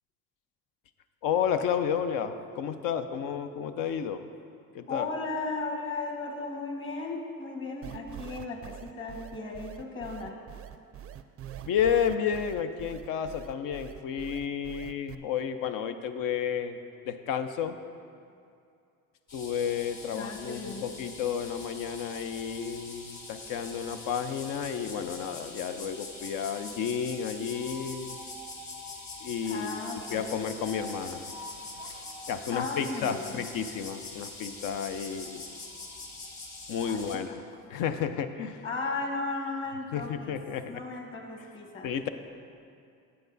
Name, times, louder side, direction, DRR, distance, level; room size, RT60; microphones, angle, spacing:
voice 1, 1.2-4.2 4.7-5.1 11.6-16.8 17.1-17.8 19.3-28.2 29.2-31.3 31.8-35.5 36.7-37.3 37.7-38.6 39.9-40.8 41.8-42.1, left 8 dB, 70° left, 8 dB, 0.6 m, -31 dB
voice 2, 4.9-10.4 20.1-20.9 29.4-30.4 32.5-33.4 36.8-37.4 38.6-40.4 40.7-41.9, left 3 dB, 35° left, 1 dB, 1.5 m, -36 dB
sound 1, 7.8-15.1, right 10 dB, 40° right, 0.4 m, -44 dB
sound 2, 19.3-37.2, left 3 dB, 55° left, 1.9 m, -43 dB
8.4 x 7.8 x 4.0 m, 2.5 s
supercardioid pair, 85°, 34 cm